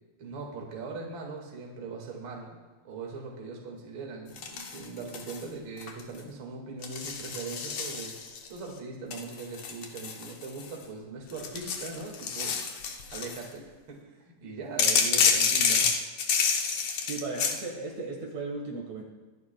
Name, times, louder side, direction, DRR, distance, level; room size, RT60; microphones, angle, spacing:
voice 1, 0.2-2.6 2.8-12.6 13.1-16.0, right 4 dB, 45° right, 0 dB, 2.4 m, -40 dB
sound 1, 4.4-5.4 5.8-6.2 6.8-8.5 9.1-10.8 11.3-13.5 14.8-17.6, left 6 dB, 65° left, 1.4 m, -28 dB
voice 2, 17.0-19.0, right 3 dB, 65° right, 0 dB, 2.8 m, -36 dB
23.5 x 11.0 x 2.3 m, 1.3 s
omnidirectional pair, 3.6 m